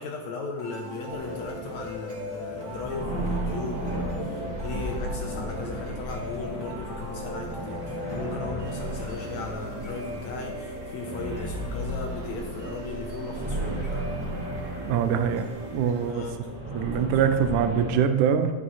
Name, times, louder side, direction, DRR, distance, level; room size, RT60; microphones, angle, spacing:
voice 1, 0.0-14.1 16.0-17.2, left 4 dB, 75° left, 2 dB, 1.8 m, -37 dB
sound 1, 0.6-16.6, right 1 dB, 35° right, 1.5 m, -41 dB
Guitar, 0.7-3.2 4.0-9.4, left 1 dB, 45° left, 2.7 m, -41 dB
sound 2, 1.1-18.0, right 1 dB, 10° right, 2.1 m, -35 dB
voice 2, 14.8-16.3 16.7-18.5, right 8 dB, 80° right, 9 dB, 1.9 m, -24 dB
11.0 x 6.2 x 4.2 m, 1.3 s
omnidirectional pair, 3.8 m